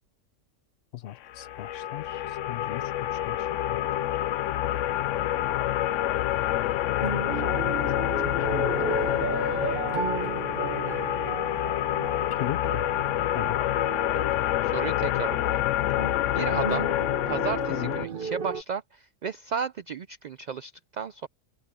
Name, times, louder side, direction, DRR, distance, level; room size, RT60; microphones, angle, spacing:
voice 1, 0.9-3.9 7.2-7.6 8.5-8.8 12.4-12.8 13.3-13.6 17.7-18.0, left 12 dB, 65° left, 0.7 m, -37 dB
sound 1, 1.3-18.1, left 13 dB, 85° left, 0.9 m, -27 dB
sound 2, 7.0-18.6, right 6 dB, 50° right, 0.9 m, -35 dB
voice 2, 14.6-15.6 16.3-16.9 17.3-21.3, right 6 dB, 75° right, 0.4 m, -33 dB
omnidirectional pair, 1.3 m